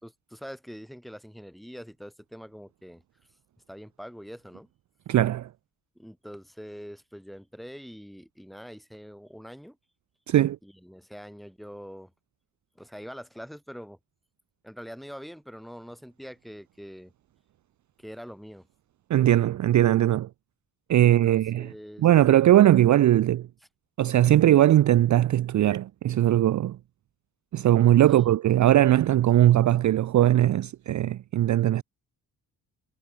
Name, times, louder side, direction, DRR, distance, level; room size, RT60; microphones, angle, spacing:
voice 1, 0.0-3.0 3.7-4.7 6.0-9.8 10.6-12.1 12.8-14.0 14.6-17.1 18.0-18.7 21.0-22.1 28.1-28.3, equal, ahead, 6.8 m, -44 dB
voice 2, 5.1-5.5 10.3-10.6 19.1-20.3 20.9-21.7 22.0-23.5 24.0-26.8 27.5-31.8, right 12 dB, 50° right, 0.5 m, -20 dB
cardioid pair, 100°, 37 cm